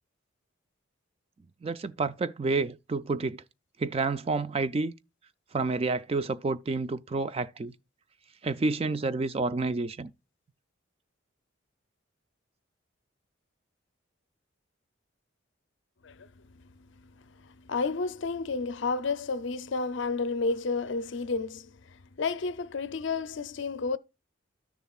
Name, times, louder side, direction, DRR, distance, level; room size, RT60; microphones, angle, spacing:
voice 1, 1.6-3.4 3.8-4.9 5.5-7.7 8.4-10.1, right 3 dB, 30° right, 0.3 m, -29 dB
voice 2, 16.0-24.0, left 4 dB, 65° left, 0.5 m, -32 dB
12.5 x 6.8 x 2.3 m
head